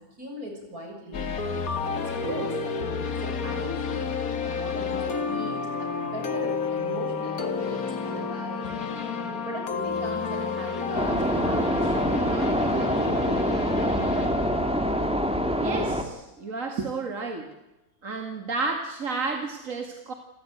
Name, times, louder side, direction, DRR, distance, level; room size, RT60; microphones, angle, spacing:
voice 1, 0.2-1.6 1.9-13.5 15.1-15.4, right 1 dB, 85° right, 2 dB, 7.1 m, -39 dB
sound 1, 1.1-16.0, left 5 dB, 75° left, 2.1 m, -31 dB
sound 2, 10.9-16.0, equal, 5° right, 2.1 m, -25 dB
voice 2, 15.6-17.5 18.0-20.1, right 3 dB, 65° right, 4 dB, 2.4 m, -31 dB
29.0 x 16.0 x 9.1 m, 0.96 s
omnidirectional pair, 1.5 m